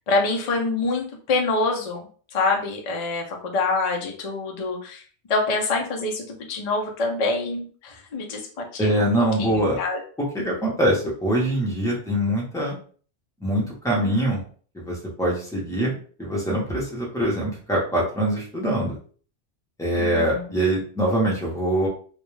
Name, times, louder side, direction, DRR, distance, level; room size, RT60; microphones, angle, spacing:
voice 1, 0.1-5.0 5.3-10.0 20.0-20.5, left 3 dB, 45° left, 1 dB, 0.5 m, -26 dB
voice 2, 8.8-9.8 10.2-12.8 13.4-14.4 14.7-19.0 19.8-21.9, right 1 dB, 5° left, -4 dB, 0.6 m, -23 dB
2.4 x 2.2 x 3.1 m, 0.43 s
omnidirectional pair, 1.2 m